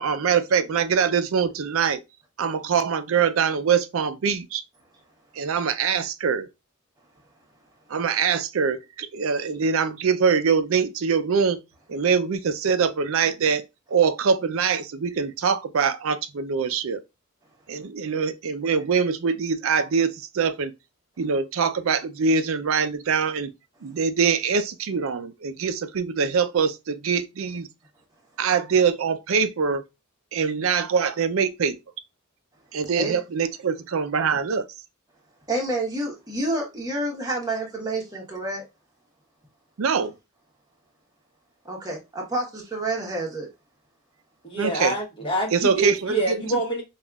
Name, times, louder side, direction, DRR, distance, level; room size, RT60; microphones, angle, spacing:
voice 1, 0.0-2.0 2.4-4.6 5.4-6.5 7.9-11.6 11.9-13.6 13.9-17.0 17.7-20.7 21.2-23.5 23.8-27.7 28.4-29.8 30.3-31.8 32.7-34.7 39.8-40.1 44.6-44.9 45.5-46.4, right 6 dB, 75° right, 0.5 m, -23 dB
voice 2, 35.5-38.6 41.6-43.5, right 2 dB, 20° right, 1.1 m, -28 dB
voice 3, 44.4-46.8, right 2 dB, 25° left, 1.2 m, -26 dB
5.3 x 2.4 x 2.3 m
head